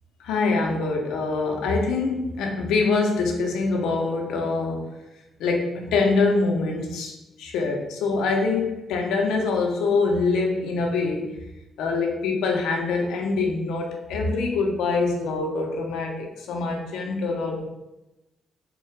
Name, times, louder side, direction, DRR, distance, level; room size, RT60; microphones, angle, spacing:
voice 1, 0.2-4.9 5.4-11.4 11.8-17.6, left 3 dB, 85° left, 1 dB, 0.8 m, -24 dB
3.7 x 2.4 x 4.4 m, 0.99 s
cardioid pair, 90°, 0 cm